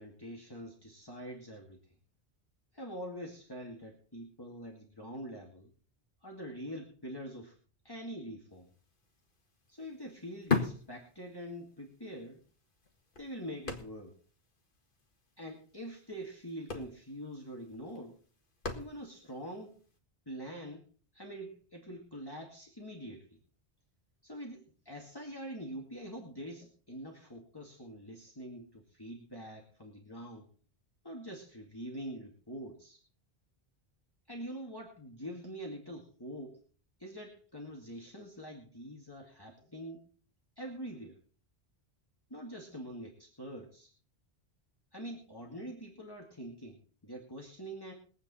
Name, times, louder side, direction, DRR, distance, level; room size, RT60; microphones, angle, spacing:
voice 1, 0.0-1.9 2.7-5.7 6.2-7.6 7.8-8.7 9.7-12.4 13.2-14.2 15.4-18.2 18.7-19.8 20.3-20.9 21.1-23.4 24.2-30.5 31.0-33.0 34.3-36.6 37.0-40.0 40.6-41.2 42.3-43.9 44.9-47.9, equal, 20° left, 0 dB, 2.1 m, -45 dB
sound 1, 8.7-8.8 9.1-11.7 12.1-12.2 12.8-14.3 14.6-14.7 14.9-15.2 16.1-16.2 16.5-19.3 19.9-20.0, left 4 dB, 50° left, 1.9 m, -37 dB
22.0 x 8.7 x 4.2 m, 0.41 s
omnidirectional pair, 1.1 m